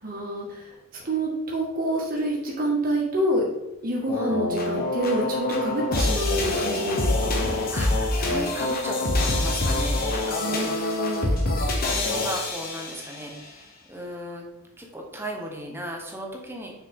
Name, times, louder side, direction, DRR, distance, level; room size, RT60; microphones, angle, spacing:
voice 1, 0.0-3.4 3.8-7.5 10.4-11.3, right 1 dB, 45° right, -4 dB, 1.6 m, -27 dB
sound 1, 4.1-13.3, left 2 dB, 45° left, 1.0 m, -25 dB
voice 2, 4.1-4.6 7.0-7.1 7.7-11.0 11.2-11.3 11.8-14.4 14.8-16.7, equal, 10° right, 1 dB, 0.9 m, -36 dB
6.6 x 4.8 x 3.6 m, 0.91 s
head